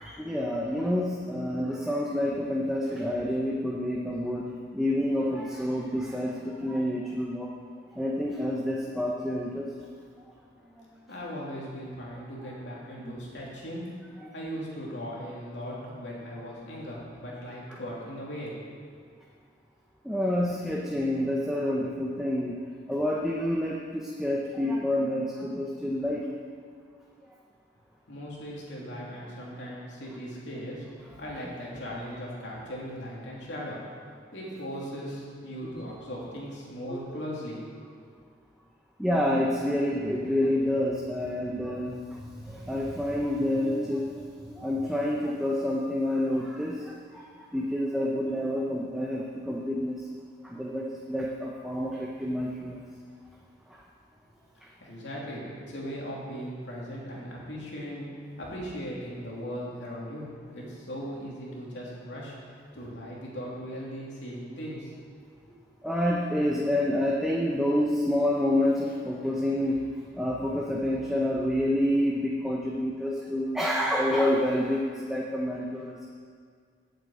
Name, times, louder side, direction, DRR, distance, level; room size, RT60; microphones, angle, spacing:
voice 1, 0.0-7.5 7.9-9.7 14.2-14.3 17.7-17.8 20.0-22.6 22.9-26.3 35.7-35.8 36.9-37.2 39.0-50.1 50.4-52.8 53.7-53.8 54.6-54.7 65.8-69.8 70.1-76.1, left 1 dB, 5° right, -3 dB, 0.8 m, -28 dB
voice 2, 11.1-13.8 14.3-18.8 28.1-30.8 31.2-33.8 34.3-37.6 54.8-58.1 58.4-64.9 65.4-65.5, equal, 80° left, -5 dB, 3.1 m, -38 dB
9.1 x 7.7 x 8.4 m, 2.1 s
head